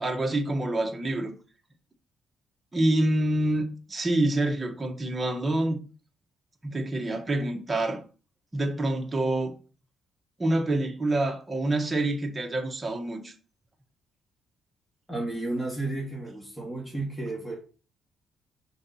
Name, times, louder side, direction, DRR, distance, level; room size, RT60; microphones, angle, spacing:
voice 1, 0.0-1.3 2.7-5.8 6.6-8.0 8.5-9.5 10.4-13.3, right 1 dB, 20° right, 1.4 m, -27 dB
voice 2, 15.1-17.5, right 2 dB, 5° left, 1.9 m, -32 dB
5.6 x 4.0 x 4.3 m
cardioid pair, 90°, 0 cm